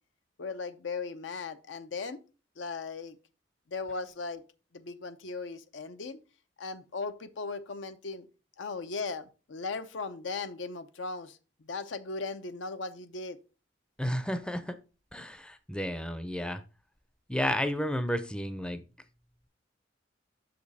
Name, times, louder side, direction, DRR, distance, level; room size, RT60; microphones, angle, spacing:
voice 1, 0.4-2.2 2.6-3.2 3.7-4.4 4.7-6.2 6.6-8.3 8.6-13.4, left 4 dB, 80° left, 0.6 m, -37 dB
voice 2, 14.0-14.8 15.1-16.6 17.3-18.8, equal, 5° left, 0.5 m, -32 dB
6.5 x 5.1 x 4.1 m
head